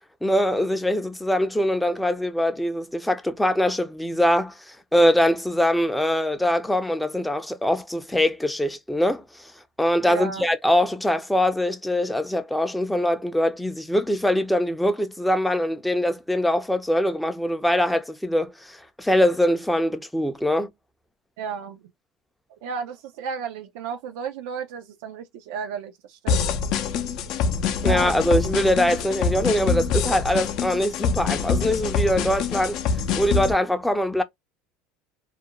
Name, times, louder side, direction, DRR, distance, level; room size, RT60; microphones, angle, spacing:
voice 1, 0.2-9.5 9.8-20.7 27.8-32.8 33.2-34.2, left 1 dB, 5° left, 0.4 m, -23 dB
voice 2, 10.0-10.4 21.4-21.8 22.6-26.5 27.8-28.2, right 6 dB, 75° right, 0.4 m, -33 dB
sound 1, 26.3-33.5, left 5 dB, 60° left, 0.4 m, -25 dB
2.4 x 2.1 x 2.9 m
supercardioid pair, 105°, 0 cm